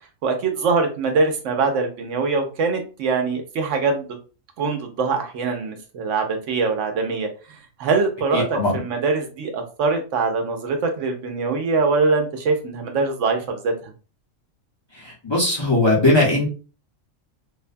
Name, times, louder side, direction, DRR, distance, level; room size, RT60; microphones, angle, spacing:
voice 1, 0.2-4.1 4.6-7.3 7.8-13.9, right 4 dB, 70° right, 4 dB, 0.9 m, -23 dB
voice 2, 8.3-8.8 14.9-16.5, left 2 dB, 30° left, -4 dB, 0.5 m, -19 dB
2.6 x 2.2 x 2.5 m, 0.35 s
omnidirectional pair, 1.3 m